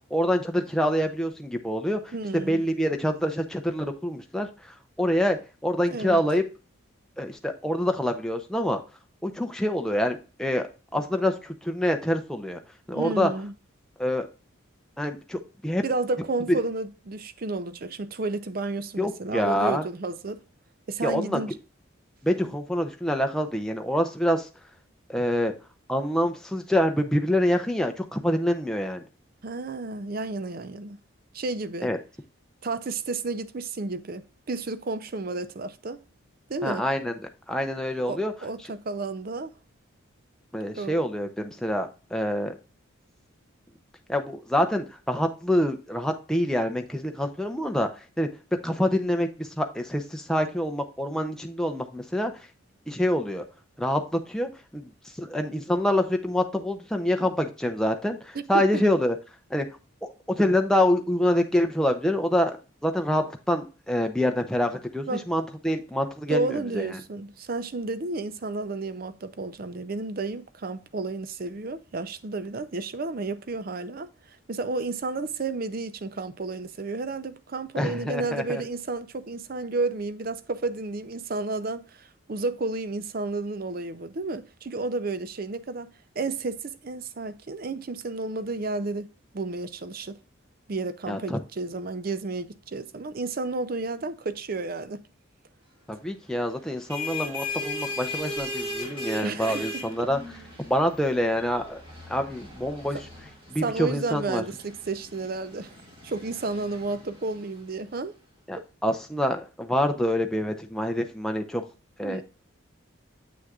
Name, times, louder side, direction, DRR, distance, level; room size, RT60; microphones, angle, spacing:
voice 1, 0.1-2.0 2.5-4.5 5.0-6.4 7.2-8.8 9.2-10.6 10.9-12.6 12.9-13.3 14.0-14.3 15.0-15.8 19.0-19.8 21.0-21.4 22.2-24.5 25.1-25.5 25.9-29.0 31.8-32.0 36.6-37.1 37.5-38.3 40.5-42.6 44.1-47.9 48.2-48.3 48.6-52.3 52.9-53.4 53.8-54.9 55.2-59.1 59.5-59.7 60.0-62.6 62.8-66.9 77.8-78.6 91.1-91.4 95.9-100.2 100.6-101.8 102.1-103.0 103.5-104.4 108.5-111.6 112.0-112.2, equal, 5° left, 0.5 m, -26 dB
voice 2, 2.1-2.6 5.9-6.2 12.9-13.5 15.8-20.4 20.9-21.6 22.4-22.5 29.4-31.0 31.3-31.9 32.6-36.0 36.5-36.9 38.0-39.5 40.8-41.0 57.2-57.3 58.3-58.8 65.1-65.2 66.3-74.1 74.5-85.9 86.2-90.2 90.7-95.0 99.2-100.1 103.6-105.7 106.0-108.1 112.0-112.2, right 3 dB, 45° right, 0.5 m, -32 dB
sound 1, 96.6-108.0, left 2 dB, 25° right, 2.0 m, -38 dB
7.8 x 6.2 x 2.4 m
head